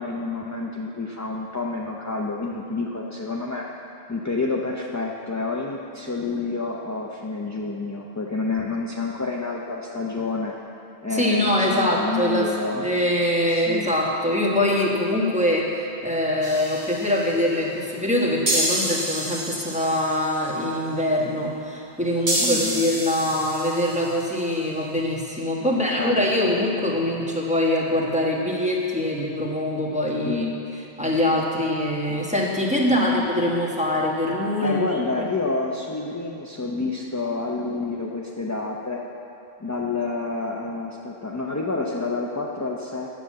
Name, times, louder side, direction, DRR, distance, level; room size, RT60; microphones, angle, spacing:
voice 1, 0.0-3.7 4.1-10.5 11.0-12.9 13.5-13.9 22.4-22.8 25.6-26.2 30.2-30.6 32.1-32.2 32.9-33.4 34.6-39.0 39.6-43.1, left 3 dB, 25° left, -2 dB, 0.4 m, -29 dB
voice 2, 11.1-30.5 31.0-35.3, left 1 dB, 5° right, -4 dB, 1.4 m, -23 dB
sound 1, 16.4-17.3 18.5-20.4 22.3-24.2, right 1 dB, 80° right, 2.1 m, -28 dB
9.4 x 7.0 x 7.4 m, 2.8 s
omnidirectional pair, 1.1 m